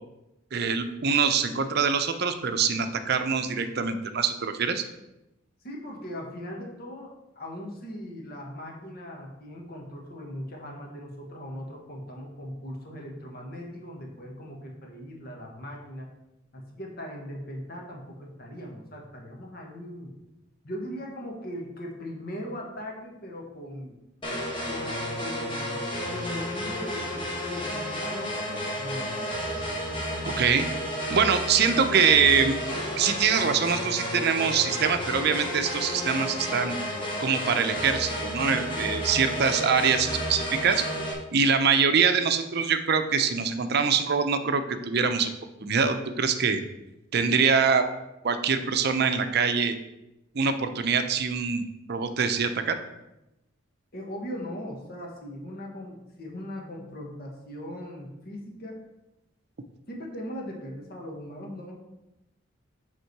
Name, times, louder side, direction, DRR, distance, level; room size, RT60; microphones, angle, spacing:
voice 1, 0.5-4.8 30.3-30.7 31.1-32.6 33.0-36.8 37.2-40.9 41.3-45.3 45.6-46.6 47.1-47.9 48.2-49.8 50.3-51.6 51.9-52.8, right 6 dB, 55° right, 8 dB, 0.6 m, -24 dB
voice 2, 5.6-16.1 16.5-20.2 20.6-24.0 24.7-25.8 26.1-29.3 53.9-58.8 59.9-61.7, equal, 55° left, 0 dB, 1.5 m, -39 dB
sound 1, 24.2-41.1, equal, 25° left, 1.2 m, -32 dB
8.1 x 3.7 x 4.6 m, 0.93 s
head